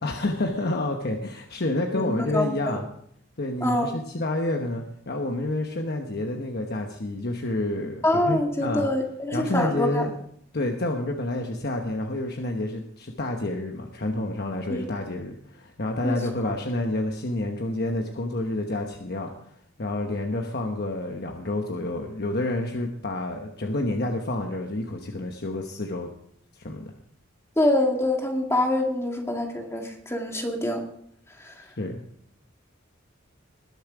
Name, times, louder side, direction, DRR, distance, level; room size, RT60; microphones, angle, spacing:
voice 1, 0.0-2.8 3.4-8.9 9.3-10.2 10.5-26.1 26.5-26.8 31.8-32.0, left 2 dB, 50° left, 3 dB, 1.1 m, -29 dB
voice 2, 1.9-2.8 3.6-3.9 8.0-10.1 14.7-14.9 16.0-16.5 27.6-30.8 31.4-31.5, left 1 dB, 15° left, 2 dB, 2.0 m, -25 dB
20.5 x 7.2 x 5.0 m, 0.68 s
head